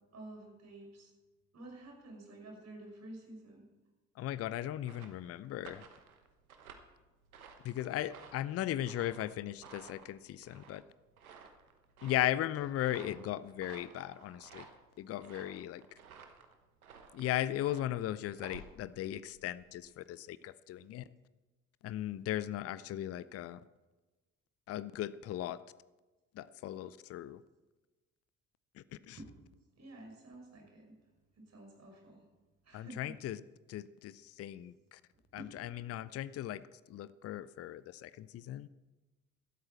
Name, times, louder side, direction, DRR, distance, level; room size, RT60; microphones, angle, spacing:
voice 1, 0.1-1.1 1.5-3.7 29.1-29.3 29.8-31.0 31.4-32.3 32.6-33.2 35.4-35.5, right 1 dB, 40° right, 1 dB, 5.7 m, -50 dB
voice 2, 4.2-5.8 7.6-10.8 12.0-14.7 15.0-15.8 17.1-21.0 21.8-23.6 24.7-25.6 26.3-27.4 28.7-29.2 32.7-33.4 33.7-35.0 35.3-36.6 36.9-38.7, left 13 dB, 35° left, 17 dB, 0.6 m, -37 dB
sound 1, 4.6-19.9, right 5 dB, 80° right, 1.2 m, -55 dB
17.0 x 12.5 x 4.4 m, 1.2 s
figure-of-eight pair, 50°, 42 cm